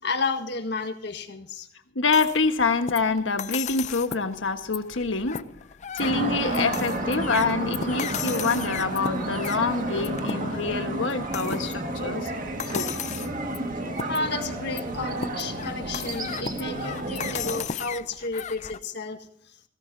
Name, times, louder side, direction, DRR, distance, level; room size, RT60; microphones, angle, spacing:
voice 1, 0.0-1.7 14.0-19.2 19.4-19.6, left 3 dB, 60° left, 6 dB, 1.7 m, -32 dB
voice 2, 1.9-5.4 5.9-12.3 12.7-12.9, left 4 dB, 80° left, 7 dB, 1.4 m, -26 dB
sound 1, 2.1-18.8, left 7 dB, 40° left, 0.5 m, -36 dB
sound 2, 6.0-17.6, right 1 dB, 45° right, 1.9 m, -31 dB
19.0 x 17.0 x 2.7 m, 0.67 s
head